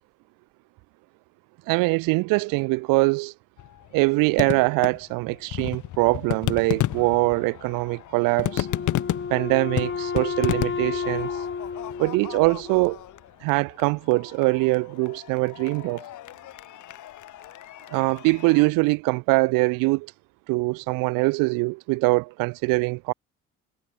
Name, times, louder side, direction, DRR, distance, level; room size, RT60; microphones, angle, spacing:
voice 1, 1.7-3.3 3.9-8.7 9.3-11.3 12.0-13.0 13.4-16.0 17.9-20.1 20.5-23.1, right 26 dB, 55° right, 0.5 m, -23 dB
sound 1, 3.6-18.7, left 14 dB, 50° left, 0.9 m, -33 dB
Wind instrument woodwind instrument, 8.5-13.0, left 5 dB, 30° left, 2.4 m, -31 dB
figure-of-eight pair, 50°, 40 cm